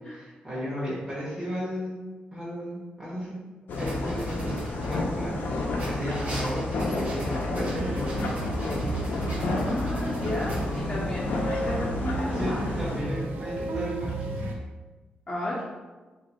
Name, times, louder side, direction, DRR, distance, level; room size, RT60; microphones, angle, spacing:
voice 1, 0.0-2.0 2.3-3.4 3.8-8.3 12.3-14.5, equal, 20° right, -9 dB, 1.2 m, -34 dB
sound 1, 3.7-13.0, left 2 dB, 80° left, 0.6 m, -30 dB
sound 2, 3.7-5.3 5.8-10.8, right 1 dB, 45° right, 1.0 m, -38 dB
sound 3, 7.7-14.6, right 3 dB, 85° right, 0.5 m, -34 dB
voice 2, 9.4-12.5 15.3-15.6, left 1 dB, 25° left, -6 dB, 0.7 m, -33 dB
3.2 x 2.7 x 4.2 m, 1.2 s
cardioid pair, 115°, 3 cm